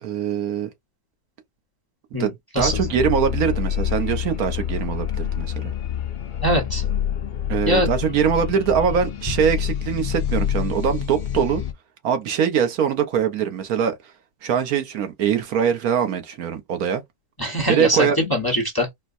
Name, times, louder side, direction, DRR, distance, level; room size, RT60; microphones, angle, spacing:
voice 1, 0.0-0.7 2.2-5.7 7.5-11.6 12.0-13.9 14.4-17.0 17.7-18.2, right 8 dB, 70° right, 1.3 m, -22 dB
voice 2, 2.1-2.8 6.4-6.8 7.7-7.9 17.4-18.9, equal, 15° left, 1.0 m, -22 dB
sound 1, 2.6-11.7, left 10 dB, 65° left, 0.4 m, -27 dB
4.3 x 2.2 x 2.5 m
omnidirectional pair, 1.6 m